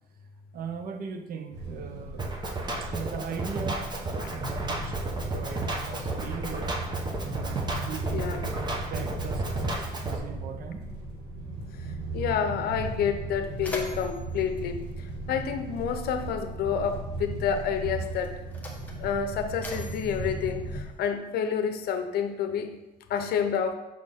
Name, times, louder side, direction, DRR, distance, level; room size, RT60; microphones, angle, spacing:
voice 1, 0.5-2.2 2.8-6.7 7.2-7.6 7.9-8.4 8.9-10.9, right 6 dB, 60° right, 7 dB, 0.7 m, -39 dB
sound 1, 1.5-20.8, right 2 dB, 85° right, 1.4 m, -37 dB
Drum kit, 2.2-10.2, right 2 dB, 25° right, 0.8 m, -33 dB
voice 2, 8.1-8.4 11.8-18.4 19.0-22.7 23.1-23.7, left 7 dB, 70° left, 7 dB, 0.7 m, -29 dB
Mechanisms, 13.2-15.9 16.9-17.0 17.8-21.4, left 2 dB, 10° left, 1.1 m, -43 dB
6.2 x 4.3 x 3.6 m, 0.99 s
cardioid pair, 110°, 17 cm